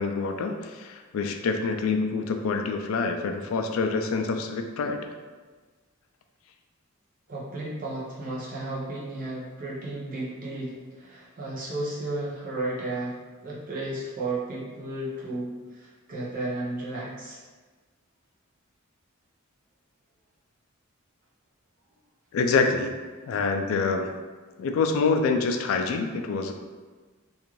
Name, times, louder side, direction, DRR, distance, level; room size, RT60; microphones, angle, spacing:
voice 1, 0.0-5.1 22.3-23.0 23.3-24.1 24.6-26.5, left 4 dB, 70° left, 5 dB, 0.3 m, -26 dB
voice 2, 7.3-17.4, right 2 dB, 40° right, -6 dB, 0.7 m, -33 dB
2.6 x 2.3 x 3.0 m, 1.4 s
head